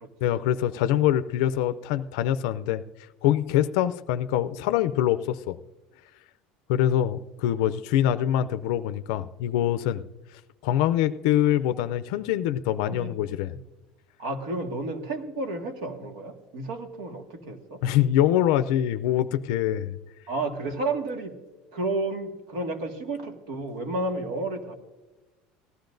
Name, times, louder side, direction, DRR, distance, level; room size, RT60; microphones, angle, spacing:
voice 1, 0.2-2.8 3.2-5.6 6.7-10.0 10.3-13.5 17.8-20.0, left 11 dB, 70° left, 11 dB, 0.4 m, -24 dB
voice 2, 12.9-13.2 14.2-17.8 20.3-21.3 21.7-24.7, right 2 dB, 85° right, 5 dB, 1.8 m, -31 dB
18.5 x 14.0 x 2.6 m, 1.1 s
cardioid pair, 180°, 3 cm